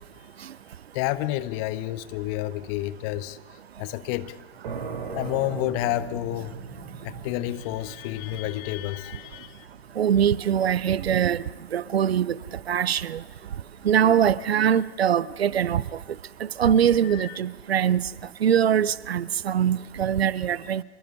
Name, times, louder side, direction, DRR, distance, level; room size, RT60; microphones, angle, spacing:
voice 1, 0.9-3.4 3.8-4.4 5.1-6.5 7.0-9.6 16.8-17.4, left 16 dB, 35° left, 0.8 m, -30 dB
sound 1, 4.6-12.0, right 5 dB, 55° right, 3.9 m, -39 dB
voice 2, 10.0-11.4 11.7-12.4 12.7-13.2 13.8-15.8 16.6-18.0 18.4-20.8, right 9 dB, 70° right, 0.6 m, -22 dB
25.5 x 23.0 x 5.4 m
figure-of-eight pair, 100°, 32 cm